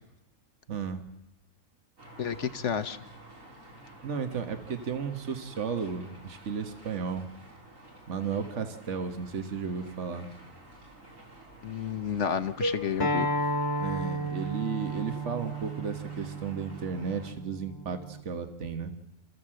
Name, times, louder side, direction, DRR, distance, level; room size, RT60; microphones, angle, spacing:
voice 1, 0.7-1.0 4.0-7.3 8.1-10.3 13.8-18.9, right 6 dB, 65° right, 7 dB, 1.7 m, -34 dB
sound 1, 2.0-17.3, right 1 dB, 80° right, 4.3 m, -51 dB
voice 2, 2.2-3.0 11.6-13.3, left 7 dB, 65° left, 10 dB, 1.3 m, -31 dB
sound 2, 12.6-14.7, equal, 25° right, 0.6 m, -38 dB
Acoustic guitar, 13.0-18.2, right 1 dB, 15° left, 1.4 m, -33 dB
28.0 x 14.5 x 7.7 m, 0.90 s
omnidirectional pair, 1.3 m